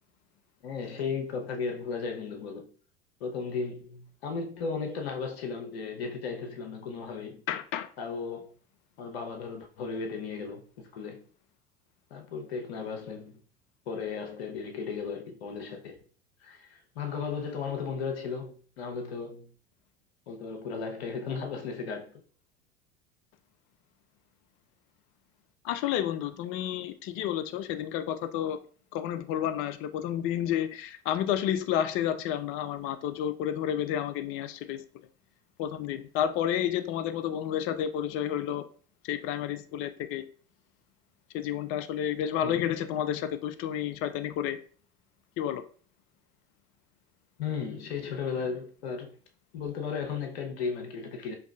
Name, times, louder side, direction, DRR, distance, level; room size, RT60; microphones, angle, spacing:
voice 1, 0.6-2.7 3.2-7.4 8.0-8.5 9.0-11.2 12.1-13.3 13.9-16.0 16.4-19.5 20.3-22.1 42.4-42.7 47.4-49.2 49.5-51.3, left 5 dB, 70° left, 0.7 m, -35 dB
voice 2, 7.5-7.9 25.6-28.6 28.9-34.8 35.6-38.6 39.0-40.2 41.3-44.6 45.4-45.6, left 10 dB, 40° left, 0.4 m, -30 dB
4.7 x 2.6 x 2.2 m
hypercardioid pair, 70°, 32 cm